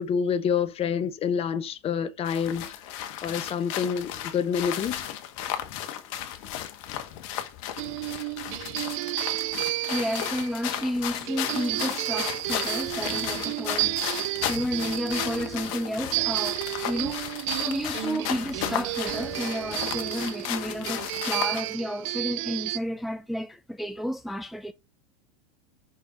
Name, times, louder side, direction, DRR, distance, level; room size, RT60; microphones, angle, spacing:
voice 1, 0.0-2.8 3.2-5.0, left 7 dB, 35° left, 1.0 m, -27 dB
sound 1, 2.3-21.7, left 11 dB, 60° left, 1.5 m, -34 dB
sound 2, 7.8-22.8, right 20 dB, 60° right, 0.5 m, -32 dB
voice 2, 9.9-14.0 14.5-24.7, equal, ahead, 0.5 m, -31 dB
6.9 x 5.3 x 5.2 m
hypercardioid pair, 95°, 18 cm